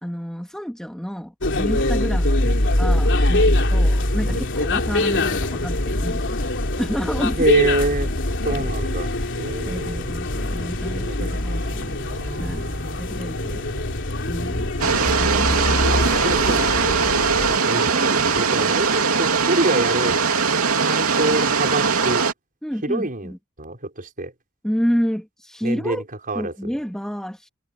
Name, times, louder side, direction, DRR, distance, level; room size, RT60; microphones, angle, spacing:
voice 1, 0.0-6.4 6.8-7.4 9.7-12.0 12.4-13.6 14.3-14.7 15.1-15.7 16.5-16.7 22.6-23.4 24.6-26.0 26.3-27.5, equal, 5° left, 2.2 m, -29 dB
sound 1, 1.4-17.6, left 1 dB, 60° left, 3.4 m, -23 dB
voice 2, 7.4-8.1 8.4-9.1 9.4-10.1 10.9-13.0 13.4-14.0 15.0-15.4 15.9-16.6 17.3-20.1 20.8-22.2 22.8-23.3 23.6-24.3 25.6-26.7, right 2 dB, 40° right, 6.0 m, -27 dB
sound 2, 14.8-22.3, right 5 dB, 70° right, 3.1 m, -20 dB
head